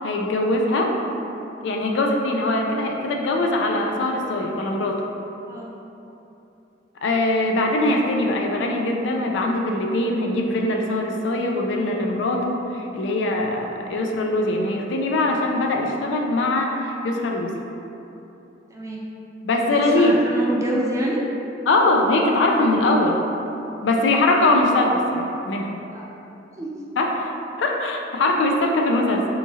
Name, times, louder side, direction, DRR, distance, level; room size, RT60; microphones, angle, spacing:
voice 1, 0.0-0.9 1.6-5.0 7.0-17.6 19.4-20.2 21.7-23.2 23.8-25.8 27.0-27.3 27.6-29.3, left 2 dB, 75° left, 1 dB, 0.4 m, -22 dB
voice 2, 18.7-19.0 19.7-21.3 24.6-24.7 25.9-26.1 26.6-26.8, right 1 dB, 15° right, -3 dB, 0.4 m, -27 dB
3.5 x 2.9 x 2.7 m, 2.9 s
head